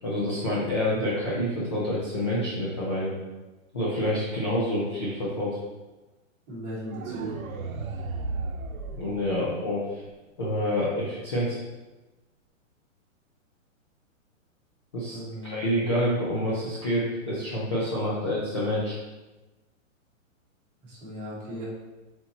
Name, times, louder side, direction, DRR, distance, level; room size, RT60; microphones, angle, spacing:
voice 1, 0.0-3.1 3.7-5.6 8.9-10.0 10.4-11.6 14.9-15.2 15.4-19.0, left 1 dB, 20° left, -7 dB, 0.6 m, -27 dB
voice 2, 6.5-7.4 15.1-16.0 20.8-21.6, equal, 15° right, -9 dB, 2.0 m, -38 dB
sound 1, 6.9-9.9, right 3 dB, 90° right, 0.9 m, -34 dB
7.8 x 4.3 x 2.8 m, 1.1 s
hypercardioid pair, 175°, 40 cm